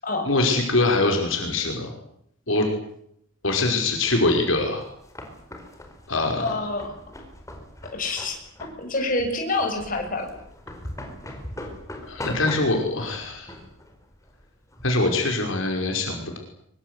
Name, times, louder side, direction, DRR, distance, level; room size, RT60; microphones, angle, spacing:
voice 1, 0.3-1.9 2.5-2.7 3.4-4.8 6.1-6.6 12.1-13.5 14.8-16.4, left 2 dB, 70° left, 2 dB, 5.5 m, -23 dB
sound 1, 4.6-15.0, left 1 dB, 15° left, 4.7 m, -40 dB
voice 2, 6.4-6.9 7.9-8.4 8.8-10.3, left 2 dB, 40° left, 2 dB, 7.1 m, -27 dB
24.5 x 24.0 x 8.4 m, 0.73 s
head